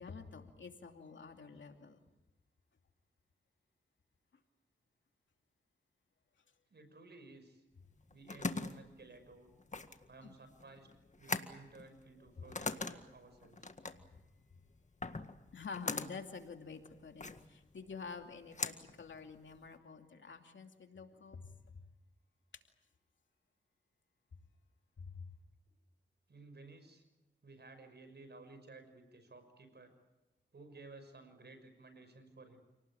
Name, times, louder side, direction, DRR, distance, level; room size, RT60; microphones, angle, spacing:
voice 1, 0.0-2.0 10.2-10.4 15.5-21.4 25.0-25.3, left 5 dB, 75° left, 4 dB, 2.7 m, -48 dB
voice 2, 6.7-7.6 8.1-9.5 10.1-10.9 11.2-13.7 26.3-27.0 27.4-29.9 30.5-32.6, right 3 dB, 60° right, 8 dB, 6.3 m, -56 dB
sound 1, 7.8-19.8, left 3 dB, 40° left, 1.8 m, -43 dB
28.5 x 19.0 x 8.8 m, 1.0 s
cardioid pair, 55°, 19 cm